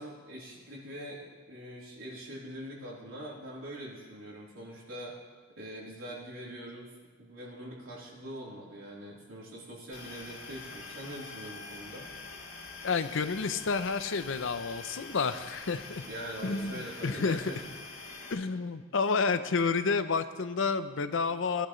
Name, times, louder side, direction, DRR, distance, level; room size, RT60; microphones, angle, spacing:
voice 1, 0.0-5.2 5.6-6.9 7.2-12.1 16.0-17.6, equal, 85° right, -5 dB, 3.7 m, -43 dB
sound 1, 9.9-18.3, left 4 dB, 90° left, 2.4 m, -45 dB
voice 2, 12.8-16.1 16.4-17.4 18.3-21.7, left 4 dB, 70° left, 11 dB, 0.6 m, -30 dB
18.5 x 10.5 x 3.2 m, 1.5 s
head